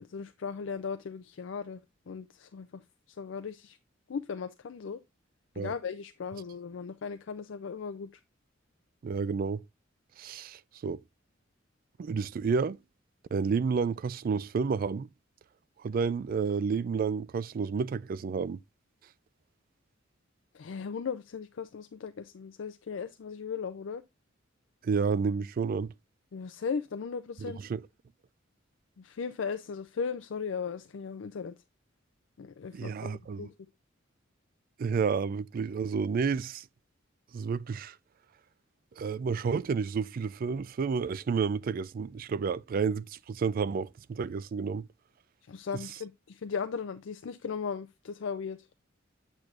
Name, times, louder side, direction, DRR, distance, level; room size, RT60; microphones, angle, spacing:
voice 1, 0.0-2.8 3.1-3.8 4.1-5.0 5.5-8.1 20.5-24.0 26.3-27.6 29.0-31.6 32.4-33.5 45.4-48.7, left 6 dB, 70° left, 0.4 m, -37 dB
voice 2, 9.0-9.6 10.2-11.0 12.0-12.8 13.3-15.1 15.8-18.6 24.8-25.9 27.4-27.8 32.7-33.5 34.8-36.7 37.3-38.0 39.0-44.9, right 5 dB, 50° right, 0.3 m, -30 dB
8.5 x 6.2 x 2.5 m
head